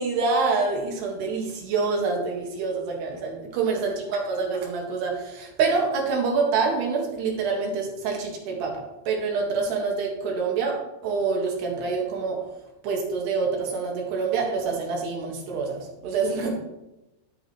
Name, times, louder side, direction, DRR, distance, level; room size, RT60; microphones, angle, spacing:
voice 1, 0.0-10.8 11.0-12.4 12.8-16.5, right 4 dB, 85° right, 0 dB, 4.0 m, -26 dB
12.0 x 8.8 x 3.2 m, 0.97 s
omnidirectional pair, 4.6 m